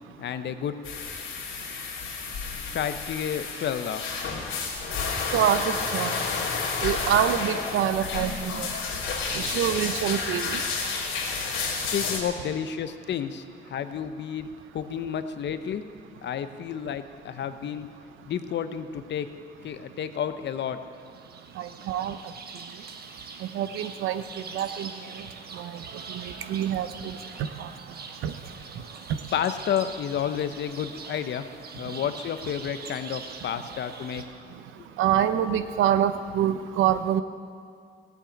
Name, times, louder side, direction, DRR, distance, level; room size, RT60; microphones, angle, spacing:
voice 1, 0.2-0.7 2.6-4.0 11.8-14.5 14.7-15.8 16.2-17.9 18.3-19.3 19.6-20.8 29.3-31.5 31.8-34.2, left 8 dB, 60° left, 10 dB, 0.9 m, -31 dB
sound 1, 0.8-12.2, left 4 dB, 85° left, 2.9 m, -31 dB
voice 2, 5.3-6.2 6.8-8.7 9.3-10.6 21.6-22.2 23.5-24.2 24.5-24.9 25.6-25.8 26.1-27.2 27.6-27.7 28.2-28.3 35.0-37.2, right 10 dB, 85° right, 11 dB, 0.8 m, -26 dB
sound 2, 20.9-34.2, right 4 dB, 50° right, 1.4 m, -43 dB
15.5 x 8.1 x 8.7 m, 2.2 s
cardioid pair, 90°, 20 cm